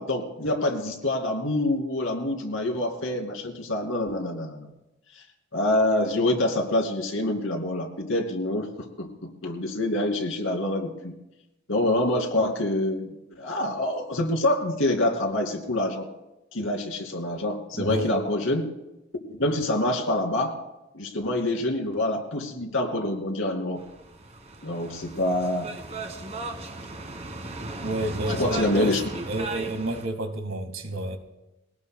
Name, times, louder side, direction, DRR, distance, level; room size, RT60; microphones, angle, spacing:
voice 1, 0.0-4.7 5.5-8.7 9.0-11.1 11.7-16.1 16.5-18.7 19.3-20.6 20.9-23.8 24.6-25.7 28.3-29.0, left 1 dB, 75° left, 3 dB, 2.6 m, -26 dB
voice 2, 17.8-18.1 27.8-28.9 29.2-31.2, right 1 dB, 70° right, 6 dB, 1.7 m, -30 dB
sound 1, 23.8-30.1, right 2 dB, 35° right, 1.4 m, -36 dB
22.5 x 18.0 x 2.2 m, 0.93 s
head